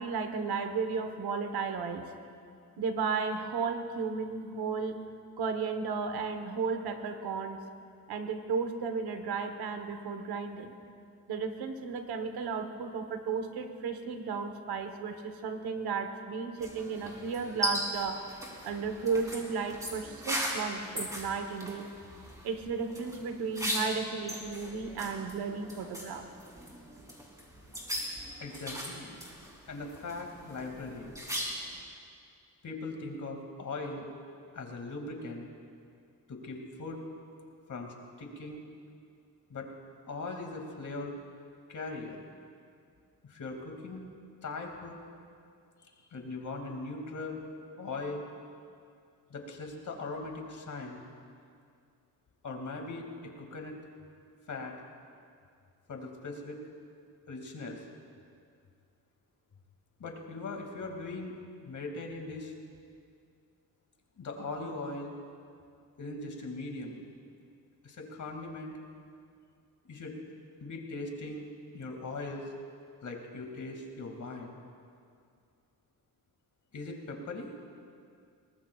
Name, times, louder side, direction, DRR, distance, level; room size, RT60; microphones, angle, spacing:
voice 1, 0.0-2.1 2.8-5.0 5.4-7.6 8.1-10.7 11.3-18.3 18.6-21.9 22.4-26.3, right 5 dB, 90° right, 7 dB, 1.3 m, -34 dB
sound 1, 16.6-31.8, equal, 10° right, 3.2 m, -39 dB
voice 2, 28.4-29.2 29.7-31.2 32.6-34.1 34.5-35.5 36.3-37.0 37.7-38.6 39.5-39.7 40.1-41.1 41.7-42.2 43.3-44.0 44.4-45.0 45.8-47.4 47.8-48.3 49.3-51.0 52.4-53.8 54.5-54.7 55.9-56.6 57.3-57.8 60.0-61.3 61.6-62.5 64.2-65.1 66.0-67.1 67.8-68.8 69.8-70.2 70.6-71.5 71.7-72.5 73.0-74.6 76.7-77.6, left 3 dB, 55° left, 2 dB, 2.4 m, -40 dB
22.0 x 19.0 x 2.4 m, 2.3 s
cardioid pair, 95°, 36 cm